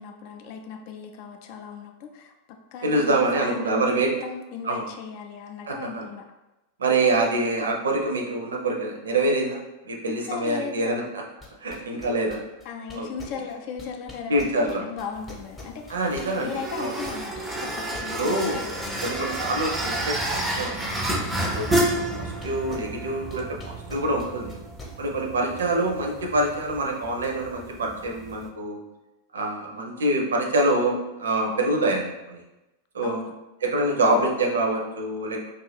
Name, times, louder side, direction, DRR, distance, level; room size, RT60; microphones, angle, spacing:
voice 1, 0.0-2.3 2.7-3.9 4.2-6.2 10.1-11.1 11.9-12.0 12.6-19.1 33.0-33.3, left 6 dB, 45° left, 4 dB, 0.4 m, -37 dB
voice 2, 2.8-4.1 4.6-4.9 5.7-6.1 6.8-11.0 11.6-12.4 12.9-13.1 14.3-14.8 15.9-16.9 18.1-18.6 19.0-20.2 20.6-21.0 21.5-24.6 25.0-28.8 29.3-32.4 32.9-33.2 33.6-35.4, right 2 dB, 70° right, 1 dB, 0.5 m, -25 dB
sound 1, 11.4-16.5 16.8-23.0 23.3-24.9, left 3 dB, 15° left, 0.8 m, -43 dB
sound 2, 15.1-28.5, right 1 dB, 10° right, 0.5 m, -31 dB
2.5 x 2.4 x 3.3 m, 1.0 s
figure-of-eight pair, 90°, 0 cm